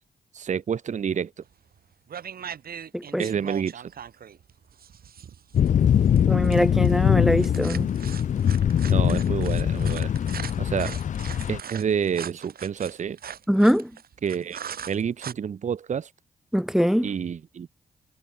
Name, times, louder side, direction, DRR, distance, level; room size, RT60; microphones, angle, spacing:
voice 1, 0.3-1.3 3.2-3.7 8.9-10.1 10.6-11.0 11.5-13.2 14.2-14.6 14.9-16.1 17.0-17.7, right 7 dB, 50° right, 0.8 m, -28 dB
sound 1, 1.5-1.8 2.1-15.3, right 8 dB, 70° right, 4.4 m, -40 dB
voice 2, 2.9-3.3 6.3-7.9 13.5-13.9 16.5-17.1, equal, ahead, 0.5 m, -22 dB
sound 2, 5.5-11.6, left 9 dB, 50° left, 0.4 m, -22 dB
cardioid pair, 80°, 16 cm